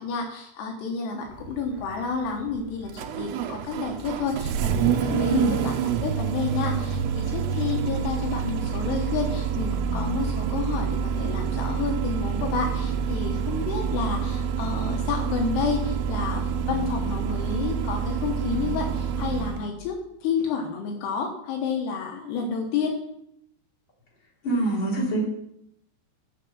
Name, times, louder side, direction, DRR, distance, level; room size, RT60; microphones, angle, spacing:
voice 1, 0.0-20.0 20.2-23.0, left 5 dB, 80° left, 2 dB, 3.2 m, -30 dB
Engine starting, 1.3-19.7, right 7 dB, 80° right, 2.7 m, -27 dB
voice 2, 5.1-5.6 24.4-25.3, right 1 dB, 30° left, -5 dB, 3.9 m, -25 dB
7.4 x 6.7 x 7.1 m, 0.73 s
omnidirectional pair, 4.7 m